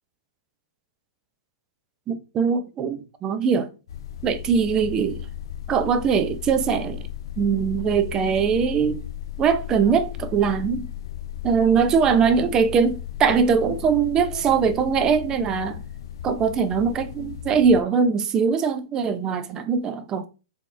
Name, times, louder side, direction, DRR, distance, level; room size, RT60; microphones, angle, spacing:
voice 1, 2.1-3.7 4.2-5.3 5.7-7.1 7.4-9.0 9.4-10.9 11.4-15.8 16.2-20.3, right 6 dB, 25° right, 0.6 m, -21 dB
sound 1, 3.9-17.8, left 11 dB, 70° left, 0.4 m, -35 dB
4.1 x 3.0 x 3.3 m
hypercardioid pair, 115°, 2 cm